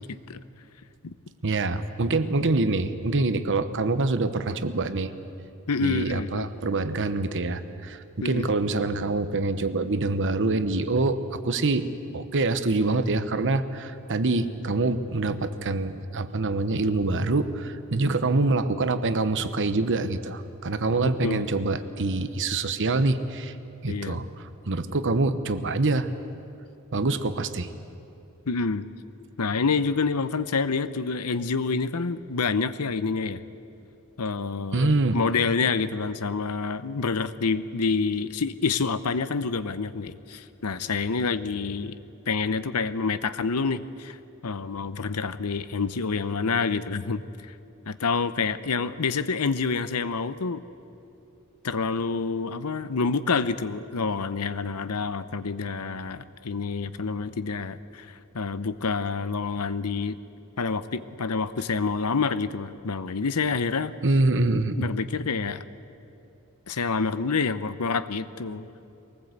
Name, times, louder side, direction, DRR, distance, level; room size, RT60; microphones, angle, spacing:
voice 1, 1.4-5.1 5.8-11.9 12.1-23.5 23.8-26.1 26.9-27.7 34.7-35.2 64.0-64.9, right 3 dB, 55° right, 11 dB, 1.0 m, -25 dB
voice 2, 5.7-6.5 8.2-8.5 21.0-21.5 23.9-24.2 28.5-28.9 29.4-33.4 34.2-42.0 42.3-44.2 44.4-47.2 47.5-47.6 47.9-50.6 51.6-60.2 60.6-63.9 64.7-65.6 66.7-68.7, left 4 dB, 85° left, 13 dB, 0.8 m, -27 dB
22.5 x 19.0 x 8.1 m, 2.7 s
head